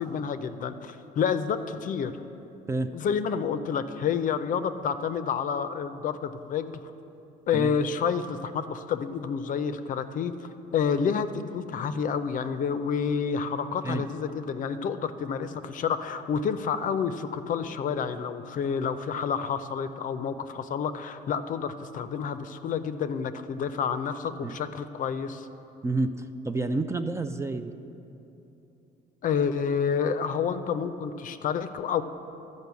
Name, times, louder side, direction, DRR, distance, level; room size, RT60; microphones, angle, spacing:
voice 1, 0.0-2.1 2.9-6.7 7.5-25.5 29.2-32.0, left 6 dB, 50° left, 10 dB, 0.5 m, -29 dB
voice 2, 25.8-26.1 26.4-27.7, right 3 dB, 15° right, 9 dB, 0.4 m, -28 dB
12.0 x 5.3 x 8.1 m, 3.0 s
cardioid pair, 110°, 17 cm